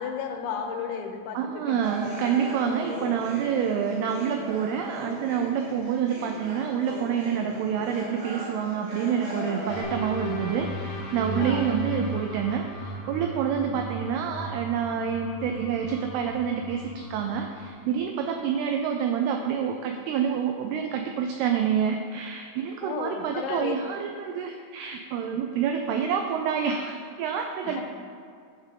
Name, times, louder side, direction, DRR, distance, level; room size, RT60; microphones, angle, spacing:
voice 1, 0.0-1.8 11.4-11.7 22.8-23.8 27.6-27.8, left 7 dB, 90° left, 4 dB, 3.3 m, -33 dB
voice 2, 1.3-27.8, right 7 dB, 85° right, 4 dB, 2.3 m, -28 dB
sound 1, 1.8-9.8, equal, 40° right, 2.3 m, -38 dB
sound 2, 9.7-17.7, right 1 dB, 70° left, 1.7 m, -36 dB
13.5 x 7.5 x 3.7 m, 2.2 s
omnidirectional pair, 5.2 m